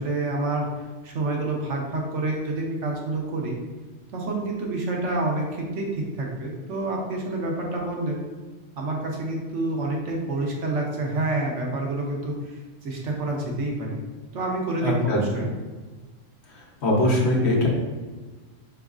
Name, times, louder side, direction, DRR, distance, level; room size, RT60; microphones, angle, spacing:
voice 1, 0.0-3.6 4.1-8.2 8.8-14.0 14.3-15.5, right 2 dB, 70° right, -1 dB, 1.1 m, -28 dB
voice 2, 14.8-15.2 16.5-17.7, left 1 dB, 60° left, -2 dB, 1.1 m, -22 dB
4.8 x 3.0 x 2.4 m, 1.3 s
omnidirectional pair, 1.3 m